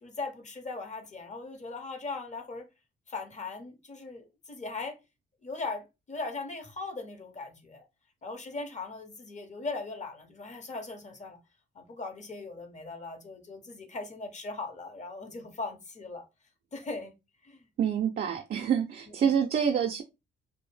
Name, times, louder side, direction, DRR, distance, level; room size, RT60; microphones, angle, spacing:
voice 1, 0.0-2.7 3.1-5.0 5.4-7.8 8.2-11.4 11.7-16.3 16.7-17.1 17.4-17.6 19.2-19.4, left 3 dB, 35° left, 0.8 m, -39 dB
voice 2, 17.8-20.0, right 8 dB, 50° right, 0.5 m, -27 dB
2.6 x 2.0 x 3.2 m
cardioid pair, 90°, 20 cm